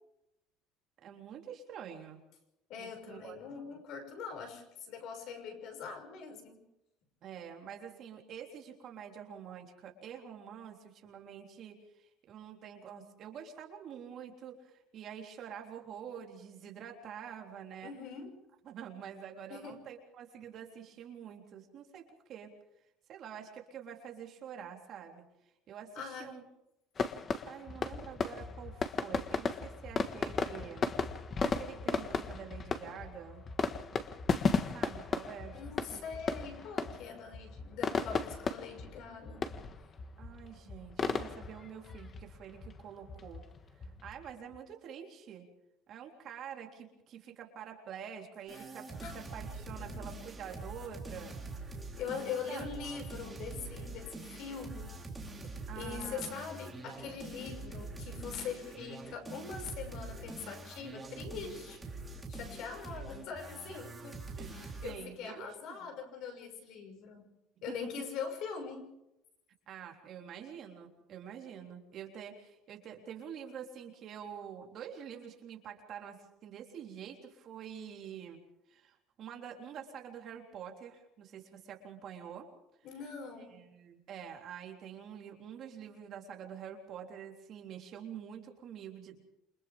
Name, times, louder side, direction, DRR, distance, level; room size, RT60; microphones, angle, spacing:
voice 1, 1.0-2.2 2.8-3.4 3.6-3.8 7.2-17.9 18.6-22.5 23.1-25.3 25.7-26.4 27.5-30.9 31.5-33.4 34.7-35.6 35.9-36.1 40.2-43.4 43.8-45.5 45.9-51.3 52.5-52.7 55.7-56.4 64.4-64.6 64.8-65.9 67.7-67.8 69.7-78.4 78.7-82.5 83.4-89.2, right 8 dB, 35° right, 2 dB, 3.6 m, -47 dB
voice 2, 2.7-6.6 17.8-18.3 19.5-19.8 25.9-26.3 35.5-39.4 48.5-48.6 49.0-49.2 49.8-49.9 52.0-55.0 55.4-61.8 62.3-64.2 64.5-67.3 67.6-68.9 82.8-83.6, left 6 dB, 50° left, 5 dB, 6.1 m, -42 dB
sound 1, 27.0-44.6, left 5 dB, 20° left, 1.5 m, -36 dB
sound 2, 48.5-65.0, right 3 dB, 10° right, 3.7 m, -44 dB
29.0 x 26.0 x 3.6 m, 0.88 s
cardioid pair, 175°, 0 cm